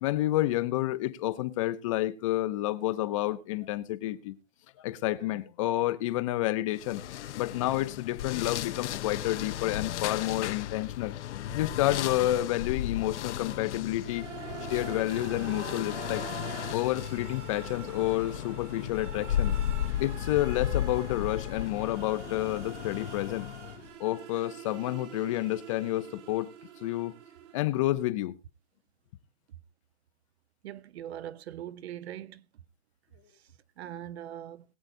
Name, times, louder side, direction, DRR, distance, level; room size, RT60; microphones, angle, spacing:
voice 1, 0.0-4.3 4.8-11.1 11.5-14.3 14.7-16.3 16.7-19.5 20.0-23.5 24.0-26.5 26.8-27.2 27.5-28.4, left 15 dB, 30° left, 0.5 m, -29 dB
sound 1, 6.8-23.9, left 11 dB, 70° left, 0.7 m, -35 dB
sound 2, 14.0-27.9, right 9 dB, 75° right, 1.6 m, -45 dB
voice 2, 30.6-32.4 33.8-34.6, right 11 dB, 60° right, 0.8 m, -41 dB
21.5 x 7.9 x 2.6 m
hypercardioid pair, 155°, 36 cm